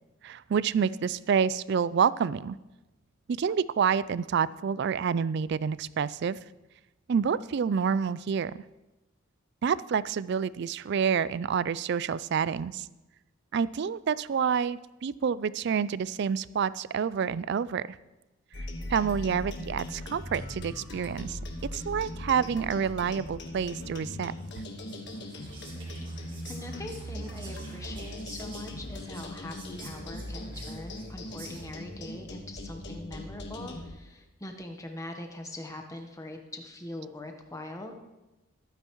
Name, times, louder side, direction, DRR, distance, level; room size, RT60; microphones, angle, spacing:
voice 1, 0.2-2.6 3.3-6.4 7.1-8.5 9.6-12.9 13.5-17.8 18.9-21.4 21.7-24.3, right 7 dB, 50° right, 18 dB, 0.3 m, -28 dB
sound 1, 18.5-33.9, left 1 dB, 50° left, 1.4 m, -39 dB
Whispering, 24.4-31.9, right 3 dB, 20° right, 2.3 m, -50 dB
voice 2, 26.5-38.0, left 1 dB, 15° left, 3 dB, 1.0 m, -42 dB
22.0 x 9.0 x 3.1 m, 1.0 s
head